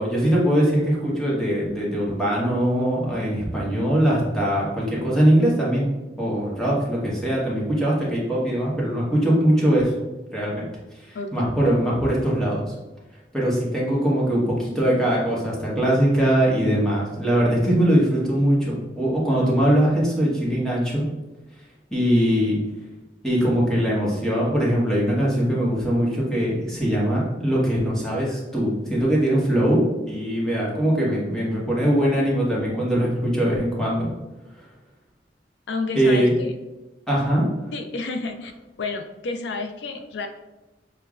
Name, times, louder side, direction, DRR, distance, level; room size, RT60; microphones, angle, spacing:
voice 1, 0.0-5.9 6.2-9.9 10.3-10.7 11.1-12.7 13.3-21.1 21.9-22.6 23.2-34.1 35.9-36.3 37.1-37.4, right 1 dB, 5° left, -6 dB, 1.0 m, -21 dB
voice 2, 11.1-11.7 35.7-36.5 37.7-38.5 38.8-40.3, left 3 dB, 80° left, 6 dB, 0.4 m, -30 dB
6.6 x 2.2 x 2.4 m, 1.0 s
head